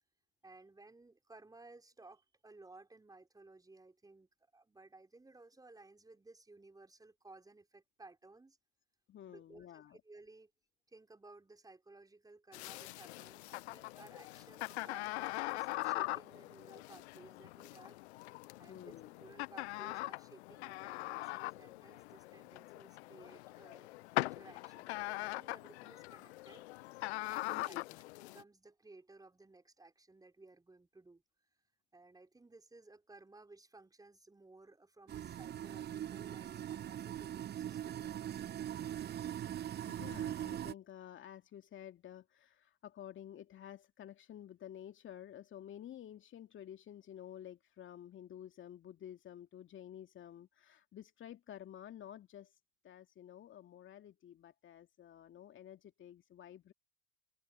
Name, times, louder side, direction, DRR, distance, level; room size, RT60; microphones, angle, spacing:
voice 1, 0.4-8.6 9.2-10.5 10.9-18.0 18.6-26.6 27.3-27.8 28.2-31.2 31.9-38.4, right 2 dB, 10° right, 4.7 m, -58 dB
voice 2, 9.1-10.0 18.7-19.1 27.5-28.0 39.9-52.5 52.8-56.7, left 10 dB, 30° left, 2.4 m, -51 dB
sound 1, 12.5-28.4, left 20 dB, 55° left, 0.8 m, -42 dB
sound 2, 35.1-40.7, right 11 dB, 25° right, 1.1 m, -41 dB
open air
figure-of-eight pair, 80°, 40 cm